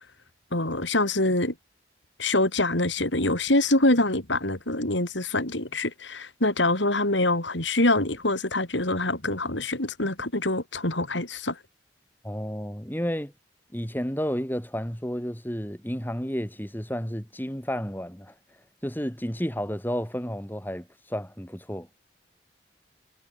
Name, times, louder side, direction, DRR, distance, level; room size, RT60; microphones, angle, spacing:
voice 1, 0.5-1.5 2.2-11.6, left 2 dB, 80° left, 5.9 m, -25 dB
voice 2, 12.2-13.3 13.7-18.3 18.8-21.9, equal, 10° left, 4.0 m, -31 dB
head